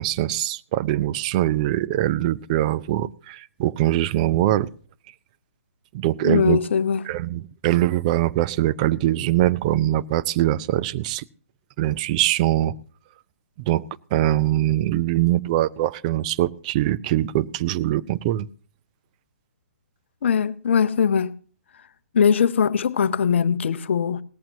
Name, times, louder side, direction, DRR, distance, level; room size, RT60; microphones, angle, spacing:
voice 1, 0.0-4.7 5.9-6.6 7.1-11.2 11.8-12.7 13.6-13.8 14.1-18.5, right 14 dB, 30° right, 0.5 m, -22 dB
voice 2, 6.2-7.1 20.2-21.3 22.1-24.2, left 7 dB, 55° left, 0.7 m, -21 dB
18.5 x 14.5 x 2.8 m
figure-of-eight pair, 130°, 8 cm